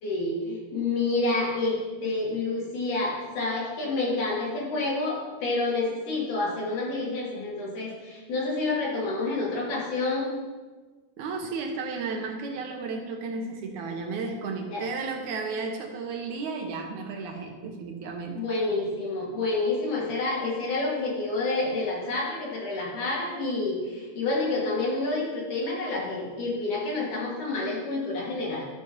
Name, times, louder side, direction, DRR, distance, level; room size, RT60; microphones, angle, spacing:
voice 1, 0.0-10.3 14.7-14.8 18.4-28.7, left 2 dB, 55° left, -4 dB, 3.6 m, -28 dB
voice 2, 11.2-18.4, right 4 dB, 70° right, 2 dB, 2.0 m, -33 dB
13.0 x 5.1 x 5.4 m, 1.3 s
omnidirectional pair, 4.5 m